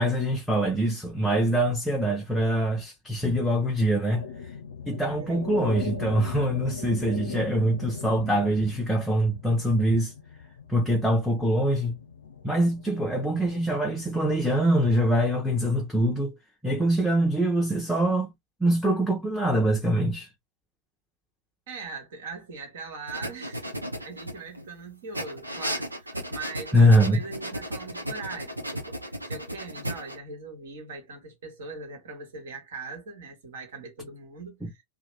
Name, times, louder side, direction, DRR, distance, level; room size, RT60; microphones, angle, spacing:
voice 1, 0.0-4.2 4.9-10.1 10.7-12.0 12.4-16.4 16.6-18.3 18.6-20.3 26.7-27.2, right 1 dB, 5° left, 0.6 m, -24 dB
sound 1, 4.1-14.4, left 6 dB, 70° left, 0.5 m, -39 dB
voice 2, 5.1-5.4 21.7-23.7 24.0-34.8, right 4 dB, 60° right, 1.2 m, -41 dB
sound 2, 23.1-24.7 25.1-30.2, equal, 85° right, 0.6 m, -35 dB
2.9 x 2.0 x 3.2 m
figure-of-eight pair, 90°, 0 cm